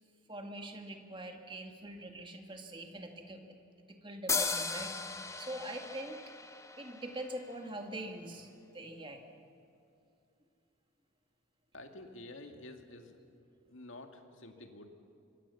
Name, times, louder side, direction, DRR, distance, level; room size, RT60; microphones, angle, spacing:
voice 1, 0.3-3.6 3.9-6.2 6.8-9.2, right 1 dB, 25° right, 4 dB, 1.9 m, -44 dB
sound 1, 4.3-7.8, left 4 dB, 15° left, 0.8 m, -37 dB
voice 2, 11.7-13.2 13.7-14.9, left 2 dB, 70° left, 5 dB, 2.1 m, -49 dB
26.0 x 22.5 x 7.1 m, 2.6 s
head